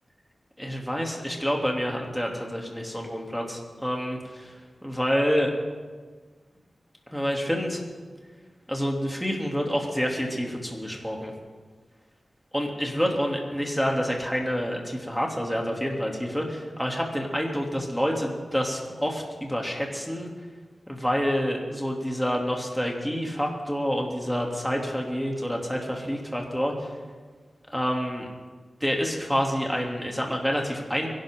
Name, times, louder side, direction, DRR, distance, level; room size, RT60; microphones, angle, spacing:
voice 1, 0.6-5.5 7.1-7.8 8.7-11.3 12.5-20.3 20.9-26.9 27.7-28.3 28.8-31.1, equal, ahead, 0 dB, 3.2 m, -28 dB
23.5 x 12.0 x 3.9 m, 1.5 s
cardioid pair, 55°, 0 cm